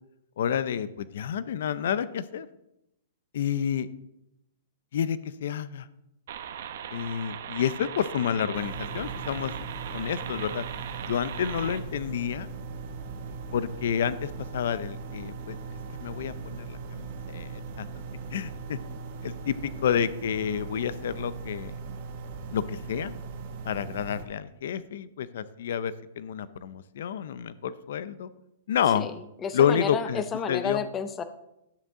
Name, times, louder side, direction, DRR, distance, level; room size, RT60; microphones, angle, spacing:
voice 1, 0.4-2.5 3.3-3.9 4.9-5.9 6.9-9.5 9.9-10.6 11.1-12.5 13.5-15.6 16.0-17.5 17.8-17.9 18.3-18.8 19.2-21.7 22.5-23.1 23.7-28.3 28.7-29.0 29.5-30.2 30.5-30.8, left 8 dB, 65° left, 16 dB, 0.6 m, -29 dB
sound 1, 6.3-11.8, right 9 dB, 60° right, 1.0 m, -39 dB
sound 2, 8.5-24.3, right 4 dB, 45° right, 1.3 m, -39 dB
voice 2, 28.9-31.2, left 6 dB, 15° left, 10 dB, 0.6 m, -31 dB
11.5 x 9.2 x 3.7 m, 0.87 s
hypercardioid pair, 160°, 0 cm